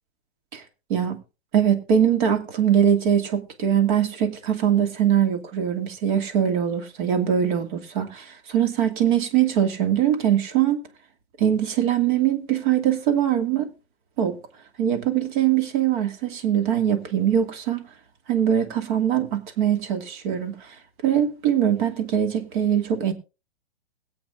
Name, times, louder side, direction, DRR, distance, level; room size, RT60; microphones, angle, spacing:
voice 1, 1.5-10.8 11.4-13.7 14.2-14.4 14.8-17.8 18.3-20.5 21.0-23.1, right 9 dB, 45° right, 2.6 m, -22 dB
21.0 x 8.1 x 2.7 m
hypercardioid pair, 130°, 33 cm